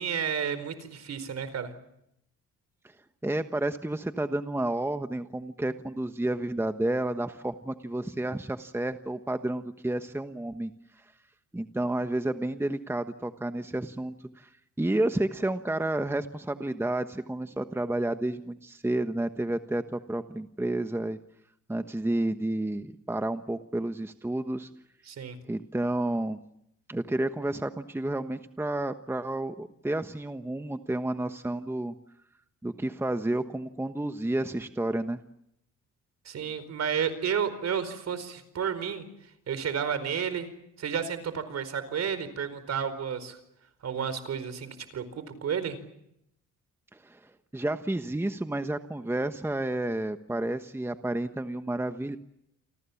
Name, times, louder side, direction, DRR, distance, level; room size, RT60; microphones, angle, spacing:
voice 1, 0.0-1.7 25.1-25.4 36.2-39.1 39.5-40.5 40.8-43.4 43.8-45.8, right 7 dB, 60° right, 13 dB, 4.7 m, -31 dB
voice 2, 3.2-10.7 11.5-14.5 14.8-21.2 21.7-24.7 25.5-26.4 26.9-31.9 32.6-35.2 46.9-52.2, right 1 dB, 10° right, 8 dB, 1.2 m, -31 dB
29.5 x 24.5 x 7.2 m, 0.79 s
cardioid pair, 90°, 30 cm